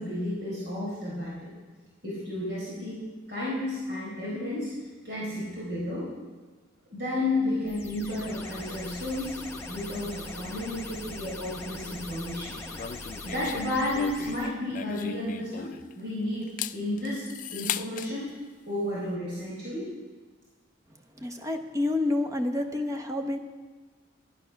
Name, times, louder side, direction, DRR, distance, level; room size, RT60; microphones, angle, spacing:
voice 1, 0.0-1.5 2.0-3.0 3.3-4.7 5.0-6.1 6.9-9.3 9.6-12.6 13.2-17.2 17.5-18.3 18.7-19.9, left 1 dB, 60° right, -7 dB, 4.1 m, -32 dB
sound 1, 7.7-14.5, left 2 dB, 15° left, 1.1 m, -41 dB
sound 2, 12.7-16.0 16.4-18.1, left 9 dB, 45° left, 0.3 m, -37 dB
voice 2, 21.2-23.4, left 2 dB, 15° right, 5 dB, 0.8 m, -28 dB
11.5 x 10.5 x 5.8 m, 1.4 s
head